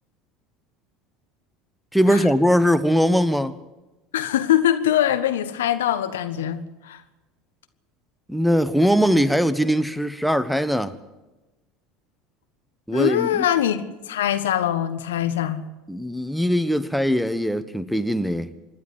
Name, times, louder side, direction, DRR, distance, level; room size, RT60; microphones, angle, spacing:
voice 1, 1.9-3.5 8.3-10.9 12.9-13.4 15.9-18.5, equal, ahead, 1.3 m, -21 dB
voice 2, 4.1-7.0 12.9-15.6, left 11 dB, 75° left, 1.5 m, -23 dB
26.5 x 11.5 x 9.4 m
figure-of-eight pair, 75°, 0 cm